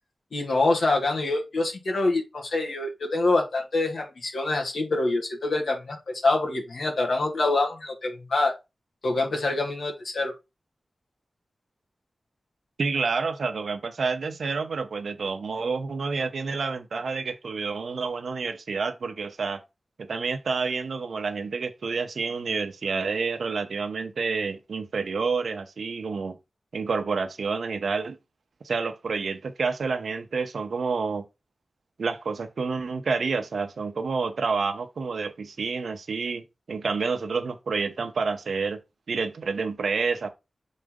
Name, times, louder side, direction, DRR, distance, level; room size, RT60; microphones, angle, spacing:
voice 1, 0.3-8.5 9.0-10.3, left 2 dB, 80° left, 1.8 m, -25 dB
voice 2, 12.8-19.6 20.0-26.4 26.7-28.2 28.6-31.2 32.0-38.8 39.1-40.3, right 4 dB, 90° right, 0.9 m, -29 dB
6.4 x 4.1 x 3.7 m
wide cardioid pair, 75°, 0 cm